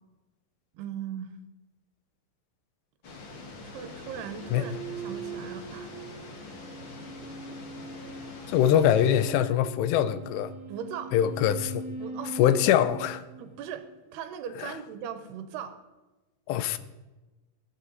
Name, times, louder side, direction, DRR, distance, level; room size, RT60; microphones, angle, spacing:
voice 1, 0.7-1.4 3.6-5.9 10.7-11.1 12.0-12.6 13.4-15.8, right 8 dB, 75° right, 9 dB, 2.9 m, -39 dB
sound 1, 3.0-9.3, left 3 dB, 60° left, 1.2 m, -44 dB
sound 2, 4.3-13.9, right 4 dB, 50° right, 3.7 m, -42 dB
voice 2, 8.5-10.5 11.1-11.8 12.4-13.2 14.6-14.7 16.5-16.8, left 10 dB, 90° left, 13 dB, 2.9 m, -23 dB
21.0 x 8.7 x 4.0 m, 1.1 s
omnidirectional pair, 4.8 m